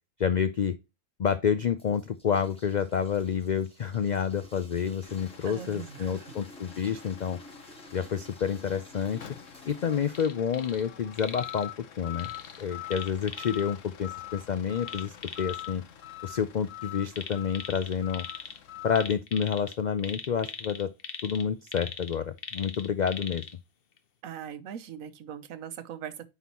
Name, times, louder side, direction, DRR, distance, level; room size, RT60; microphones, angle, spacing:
voice 1, 0.2-0.8 1.2-7.4 7.9-9.3 9.7-11.7 12.0-12.3 12.6-15.8 16.2-18.3 18.8-20.9 21.2-23.4, left 7 dB, 85° left, 0.4 m, -29 dB
sound 1, 1.8-10.3, equal, 5° left, 1.8 m, -52 dB
sound 2, 5.0-19.1, left 13 dB, 70° left, 1.2 m, -44 dB
voice 2, 5.4-6.3 24.2-26.3, right 9 dB, 80° right, 1.2 m, -41 dB
sound 3, 10.1-10.8 11.1-11.6 12.2-13.6 14.8-15.7 17.1-18.6 18.9-23.5 24.0-24.1, left 6 dB, 50° left, 0.9 m, -41 dB
9.3 x 4.0 x 2.9 m
omnidirectional pair, 1.4 m